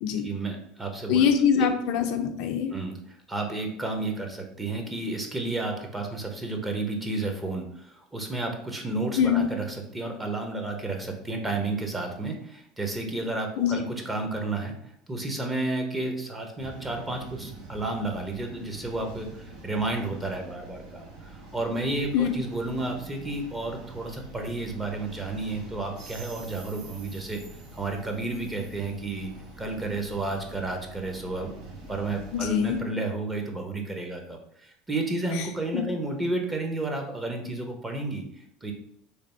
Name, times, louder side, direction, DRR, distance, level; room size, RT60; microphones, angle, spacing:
voice 1, 0.2-1.3 1.6-1.7 2.7-27.4 27.7-29.3 29.6-31.5 31.9-38.7, right 2 dB, 15° right, 2 dB, 0.8 m, -32 dB
voice 2, 1.1-2.7 9.2-9.5 13.6-13.8 22.1-22.3 32.3-32.8 35.3-35.4 35.7-35.8, left 8 dB, 65° left, 5 dB, 0.5 m, -23 dB
sound 1, 16.6-32.8, right 2 dB, 65° right, 0.9 m, -45 dB
3.3 x 2.4 x 4.2 m, 0.71 s
supercardioid pair, 95°, 0 cm